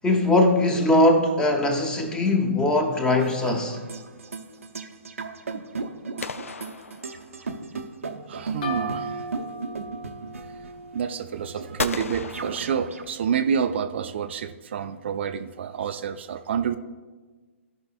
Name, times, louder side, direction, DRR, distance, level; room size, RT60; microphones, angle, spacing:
voice 1, 0.0-3.8, left 1 dB, 10° left, 0.9 m, -21 dB
sound 1, 2.9-13.0, right 4 dB, 80° right, 0.8 m, -36 dB
sound 2, 6.2-7.7 11.8-13.4, left 4 dB, 75° left, 0.4 m, -35 dB
voice 2, 8.3-9.2 10.6-16.7, right 7 dB, 55° right, 0.4 m, -28 dB
sound 3, 8.6-12.2, right 1 dB, 45° left, 1.9 m, -36 dB
16.0 x 5.4 x 2.5 m
figure-of-eight pair, 125°, 7 cm